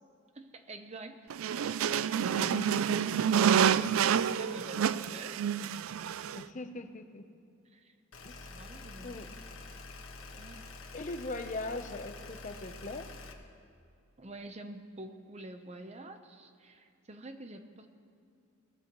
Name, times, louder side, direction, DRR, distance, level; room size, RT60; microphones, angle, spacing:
voice 1, 0.3-1.2 3.3-5.4 7.7-7.9 8.4-9.2 10.3-10.6 14.2-17.9, right 2 dB, 30° right, 7 dB, 0.8 m, -47 dB
sound 1, 1.3-6.4, right 8 dB, 85° right, 0.4 m, -28 dB
voice 2, 2.2-3.4 6.4-7.2 8.2-8.5 9.0-9.3 10.9-13.1, left 2 dB, 40° left, 7 dB, 0.7 m, -40 dB
sound 2, 8.1-13.3, left 3 dB, 85° left, 1.4 m, -47 dB
21.0 x 18.0 x 3.1 m, 2.5 s
head